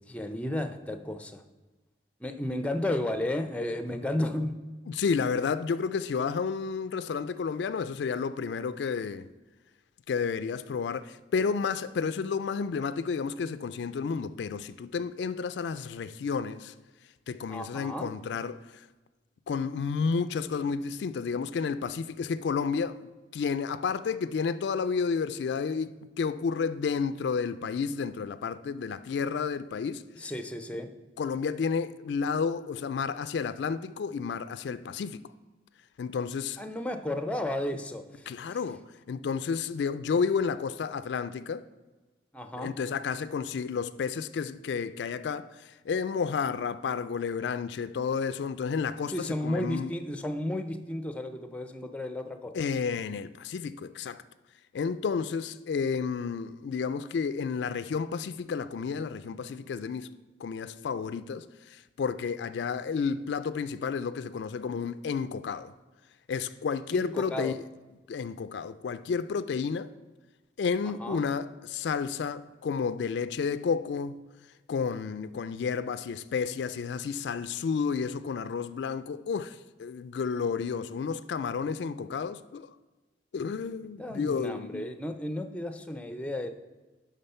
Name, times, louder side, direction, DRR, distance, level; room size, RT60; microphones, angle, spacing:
voice 1, 0.1-1.4 2.2-4.5 17.5-18.1 30.2-30.9 36.6-38.6 42.3-42.7 49.1-52.5 66.9-67.6 71.0-71.2 84.0-86.5, left 1 dB, 5° left, 0.5 m, -33 dB
voice 2, 4.9-9.3 10.1-16.7 17.3-18.8 19.5-30.3 31.2-35.2 36.0-36.6 38.3-41.6 42.6-49.9 52.5-54.2 54.7-60.1 60.4-65.7 66.3-67.6 68.1-69.9 70.6-74.2 74.7-82.7 83.3-84.9, left 5 dB, 70° left, 0.3 m, -31 dB
11.0 x 3.8 x 5.5 m
head